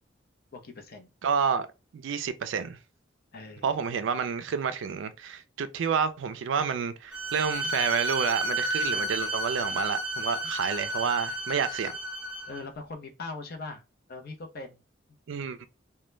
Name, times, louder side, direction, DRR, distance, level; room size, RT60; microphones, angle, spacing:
voice 1, 0.5-1.1 3.3-3.8 7.2-7.7 8.9-9.2 10.7-11.2 12.5-13.8 14.1-14.8, left 3 dB, 55° left, 0.5 m, -42 dB
voice 2, 1.2-1.7 1.9-2.8 3.6-12.0 15.3-15.7, right 6 dB, 70° right, 0.4 m, -29 dB
Bowed string instrument, 7.1-12.6, right 1 dB, 10° right, 0.7 m, -31 dB
2.2 x 2.0 x 3.1 m
head